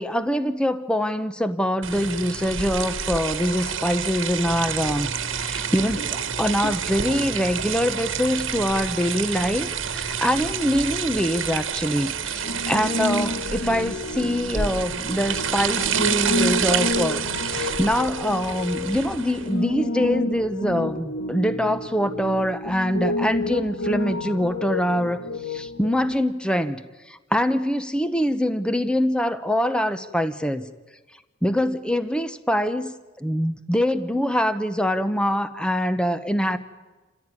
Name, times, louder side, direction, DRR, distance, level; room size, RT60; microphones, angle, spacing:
voice 1, 0.0-26.8 27.1-30.7 31.4-36.6, equal, 5° left, 11 dB, 0.9 m, -24 dB
sound 1, 1.8-19.5, right 7 dB, 70° right, 1.5 m, -28 dB
sound 2, 4.4-11.2, right 1 dB, 40° left, 1.8 m, -40 dB
Piano, 12.4-26.1, left 2 dB, 75° left, 1.6 m, -30 dB
28.0 x 16.0 x 9.8 m, 1.2 s
head